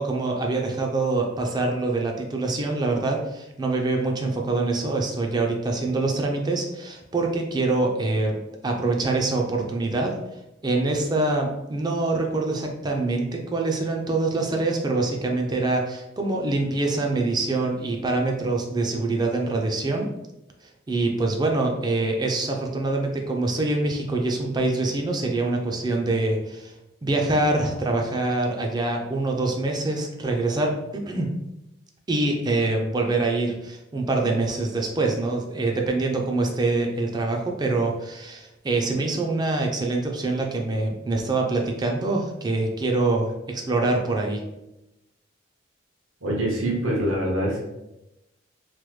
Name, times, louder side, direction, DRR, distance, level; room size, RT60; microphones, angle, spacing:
voice 1, 0.0-8.4 8.6-10.2 10.6-20.1 20.9-26.7 27.0-31.3 32.1-44.4, right 2 dB, 20° right, 2 dB, 0.3 m, -25 dB
voice 2, 46.2-47.6, right 1 dB, 85° right, -4 dB, 1.0 m, -24 dB
3.1 x 2.1 x 3.1 m, 0.93 s
head